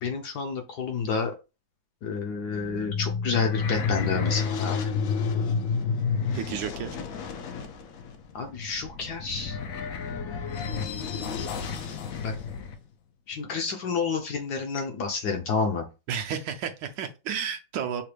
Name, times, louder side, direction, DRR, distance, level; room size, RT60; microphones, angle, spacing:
voice 1, 0.0-1.3 2.0-4.9 8.3-9.6 10.6-10.8 12.2-12.3 13.3-15.8, left 5 dB, 70° left, 1.0 m, -29 dB
sound 1, 2.3-12.8, left 5 dB, 90° left, 0.7 m, -30 dB
voice 2, 6.3-7.0 16.1-18.0, right 8 dB, 75° right, 1.1 m, -32 dB
5.7 x 2.2 x 3.2 m
omnidirectional pair, 2.2 m